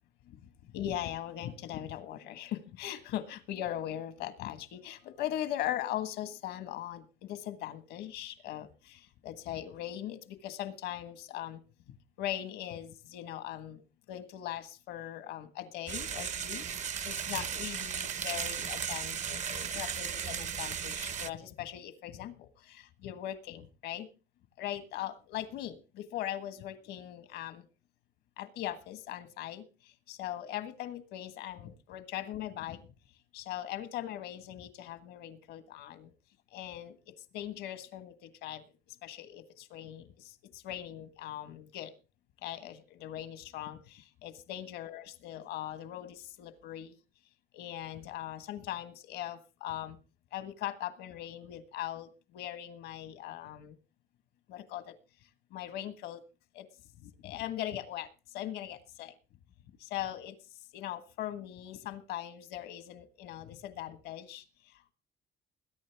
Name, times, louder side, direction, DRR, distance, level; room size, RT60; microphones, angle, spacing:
voice 1, 0.7-11.6 12.2-13.8 14.1-24.1 24.6-27.6 28.4-32.8 33.3-36.1 36.5-38.6 39.0-41.9 42.4-47.0 47.5-50.0 50.3-53.7 54.5-54.9 55.5-56.2 56.5-56.7 57.0-59.1 59.8-60.3 60.7-64.9, left 12 dB, 85° left, 11 dB, 1.5 m, -40 dB
sound 1, 15.9-21.3, right 7 dB, 45° right, 0.7 m, -36 dB
21.0 x 9.6 x 3.5 m, 0.32 s
cardioid pair, 110°, 17 cm